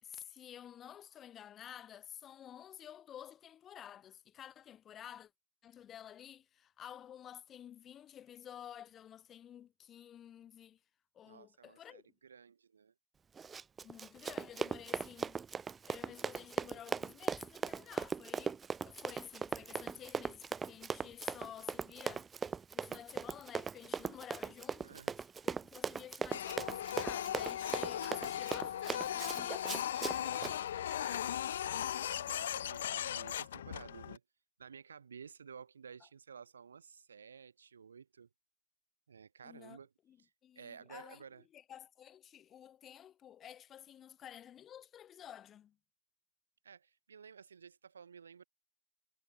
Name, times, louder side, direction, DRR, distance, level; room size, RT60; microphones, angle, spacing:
voice 1, 0.0-5.3 5.6-10.8 11.1-12.0 13.8-15.4 15.8-25.0 25.4-31.3 39.4-39.8 40.1-40.2 40.4-41.2 41.5-45.8, left 10 dB, 45° left, 4.6 m, -52 dB
voice 2, 11.2-12.9 24.8-25.1 32.0-34.2 34.6-38.3 39.1-39.9 40.2-41.4 46.6-48.4, right 6 dB, 85° right, 4.3 m, -54 dB
Run, 13.4-30.5, right 6 dB, 30° right, 0.3 m, -39 dB
Printer, 26.3-34.2, left 10 dB, 80° left, 0.7 m, -38 dB
figure-of-eight pair, 60°, 0 cm